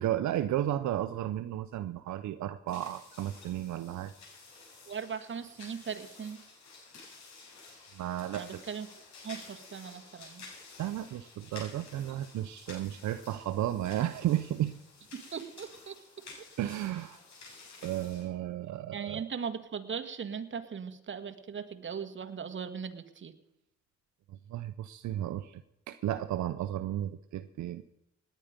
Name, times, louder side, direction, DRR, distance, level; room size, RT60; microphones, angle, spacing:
voice 1, 0.0-4.1 7.9-8.6 10.8-14.7 16.6-17.2 17.8-19.2 24.3-27.8, right 12 dB, 70° right, 11 dB, 0.7 m, -33 dB
sound 1, 2.7-18.2, left 4 dB, 70° left, 7.4 m, -52 dB
voice 2, 4.9-6.4 8.4-8.9 9.2-10.5 15.3-16.0 18.9-23.3, right 6 dB, 40° right, 9 dB, 1.7 m, -39 dB
18.5 x 10.5 x 5.2 m, 0.84 s
cardioid pair, 90°, 30 cm